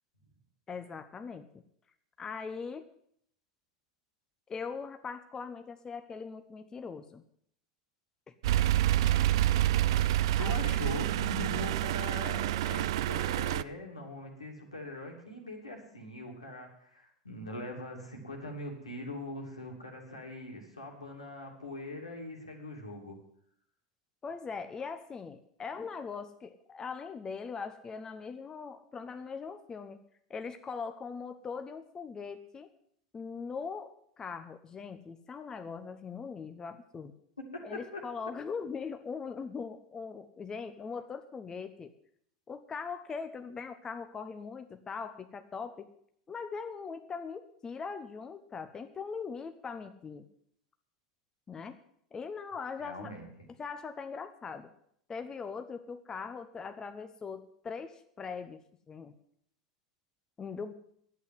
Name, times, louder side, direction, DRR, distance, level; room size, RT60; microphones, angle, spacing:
voice 1, 0.7-1.4 2.2-2.9 4.5-7.2 10.4-10.5 24.2-30.0 30.3-32.7 33.1-37.1 37.6-41.9 42.5-45.9 46.3-50.2 51.5-51.8 52.1-53.1 53.6-54.7 55.1-58.6 58.9-59.1 60.4-60.7, left 5 dB, 20° left, 8 dB, 0.9 m, -41 dB
sound 1, 8.4-13.6, right 13 dB, 60° right, 0.4 m, -28 dB
voice 2, 10.4-23.2 37.4-38.0 52.8-53.5, left 2 dB, 85° left, 1 dB, 2.8 m, -42 dB
11.0 x 8.3 x 9.5 m, 0.66 s
figure-of-eight pair, 85°, 3 cm